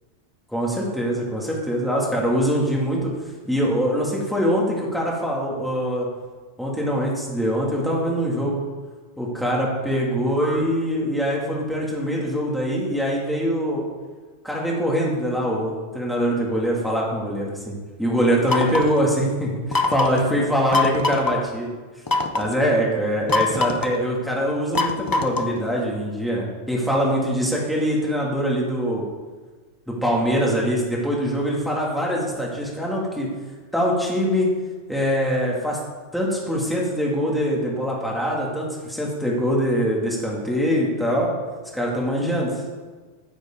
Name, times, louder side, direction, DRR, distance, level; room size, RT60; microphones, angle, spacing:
voice 1, 0.5-3.1 3.5-6.1 6.6-8.6 9.2-13.8 14.4-21.7 22.3-29.0 29.9-33.3 33.7-34.5 34.9-35.8 36.1-41.3 41.7-42.6, equal, ahead, -4 dB, 2.6 m, -23 dB
sound 1, 18.5-19.0 19.7-20.2 20.7-21.3 22.1-22.5 23.3-24.0 24.8-25.6, left 3 dB, 30° left, 0.4 m, -23 dB
14.0 x 9.7 x 4.0 m, 1.3 s
omnidirectional pair, 1.3 m